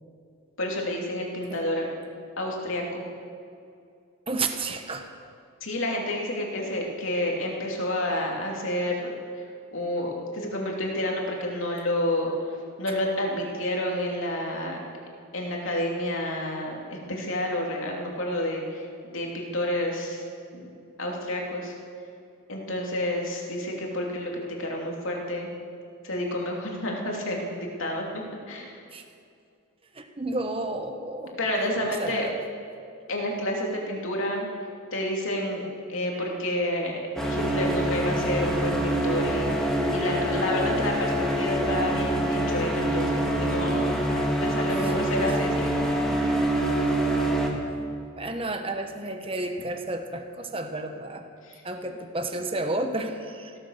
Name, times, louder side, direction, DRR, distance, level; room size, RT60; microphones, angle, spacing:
voice 1, 0.6-1.8 2.4-3.0 5.6-9.4 9.7-14.8 15.3-20.2 20.5-20.7 21.0-21.7 22.5-25.5 26.0-28.0 28.5-28.8 31.4-32.3 33.1-34.5 34.9-37.0 37.3-43.9 44.4-45.9 51.4-51.6, left 1 dB, 65° left, -1 dB, 3.0 m, -29 dB
voice 2, 4.3-5.1 12.9-13.0 28.9-29.0 29.9-31.4 31.9-32.3 44.7-44.9 48.1-51.3 51.6-53.6, right 2 dB, 25° right, 6 dB, 1.1 m, -32 dB
sound 1, 37.2-47.5, right 1 dB, 5° left, 2.0 m, -25 dB
16.0 x 13.5 x 6.6 m, 2.5 s
head